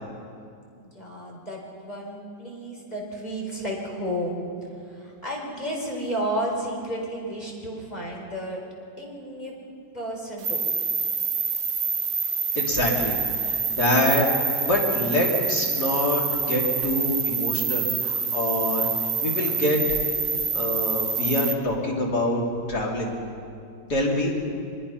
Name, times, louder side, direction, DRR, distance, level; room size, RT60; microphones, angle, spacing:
voice 1, 0.8-4.4 4.6-8.6 9.0-9.5 9.9-10.6, right 1 dB, 25° left, -2 dB, 4.4 m, -32 dB
sound 1, 10.4-21.5, right 5 dB, 75° right, 1.7 m, -26 dB
voice 2, 12.6-13.2 13.4-18.9 19.2-20.0 20.5-22.4 22.7-23.1 23.9-24.3, left 1 dB, 65° left, -2 dB, 3.8 m, -25 dB
23.5 x 22.0 x 5.8 m, 2.4 s
omnidirectional pair, 1.9 m